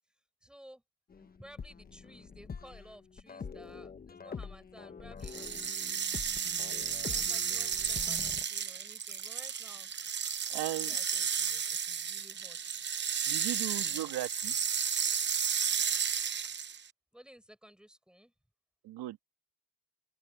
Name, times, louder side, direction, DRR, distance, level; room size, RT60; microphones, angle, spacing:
voice 1, 0.4-0.8 1.2-6.1 6.9-10.1 10.4-12.6 13.7-14.1 17.1-18.3, equal, ahead, 6.5 m, -56 dB
sound 1, 1.1-8.4, left 5 dB, 25° left, 1.1 m, -45 dB
sound 2, 5.2-16.9, right 7 dB, 30° right, 0.8 m, -33 dB
voice 2, 10.5-11.0 13.3-14.6 18.8-19.2, right 14 dB, 85° right, 2.2 m, -37 dB
open air
cardioid pair, 155°, 39 cm